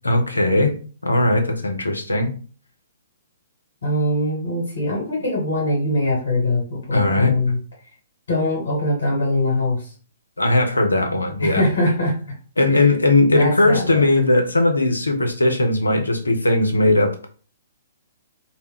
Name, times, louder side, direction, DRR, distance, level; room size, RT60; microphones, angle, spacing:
voice 1, 0.0-0.7 1.0-2.3 6.9-7.3 10.4-11.6 12.6-17.3, left 2 dB, 80° left, 5 dB, 0.5 m, -18 dB
voice 2, 3.8-7.6 8.3-9.9 11.4-12.1 12.7-12.9 13.3-14.0, left 1 dB, 55° left, -3 dB, 1.1 m, -22 dB
2.1 x 2.1 x 3.5 m, 0.39 s
figure-of-eight pair, 120°, 0 cm